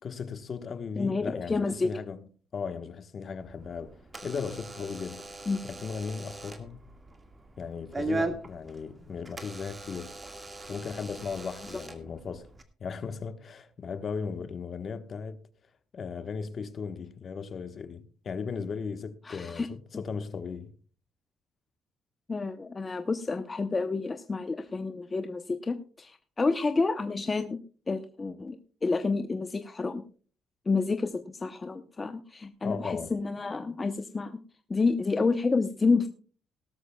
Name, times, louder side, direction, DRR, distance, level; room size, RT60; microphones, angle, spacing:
voice 1, 0.0-4.0 4.2-5.4 5.6-6.9 7.6-10.2 10.7-12.5 12.8-15.4 15.9-20.7 32.6-33.2, left 5 dB, 45° left, 1.2 m, -37 dB
voice 2, 1.0-1.9 5.5-5.7 19.2-19.7 22.3-27.6 27.9-28.6 28.8-30.0 30.7-34.4 34.7-36.1, left 4 dB, 25° left, 0.8 m, -29 dB
Door / Alarm, 3.4-12.6, right 2 dB, 20° right, 1.8 m, -39 dB
18.0 x 12.5 x 2.3 m
cardioid pair, 110°, 0 cm